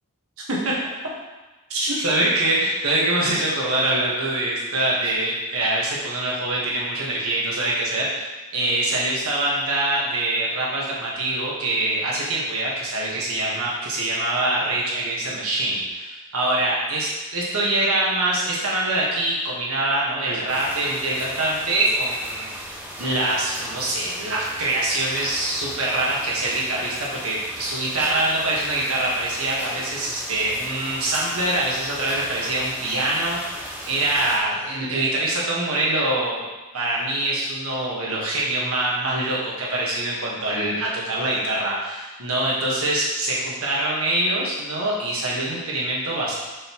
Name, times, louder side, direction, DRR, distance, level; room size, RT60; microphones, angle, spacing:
voice 1, 1.7-8.3 8.5-33.4 33.9-36.4 36.7-46.4, right 1 dB, 70° right, -5 dB, 1.5 m, -24 dB
sound 1, 20.5-34.4, equal, 5° right, 1.3 m, -37 dB
7.1 x 5.3 x 3.1 m, 1.2 s
head